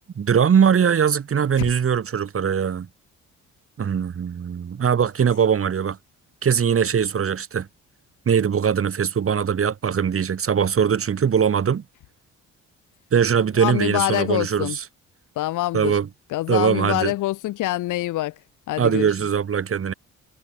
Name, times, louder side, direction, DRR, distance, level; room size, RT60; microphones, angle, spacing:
voice 1, 0.1-2.9 3.8-6.0 6.4-7.7 8.2-11.8 13.1-14.7 15.7-16.1 16.5-17.1 18.8-19.9, right 7 dB, 45° right, 3.4 m, -21 dB
voice 2, 13.3-14.8 15.3-16.0 16.3-18.4 18.7-19.1, left 16 dB, 85° left, 1.5 m, -25 dB
cardioid pair, 90°, 30 cm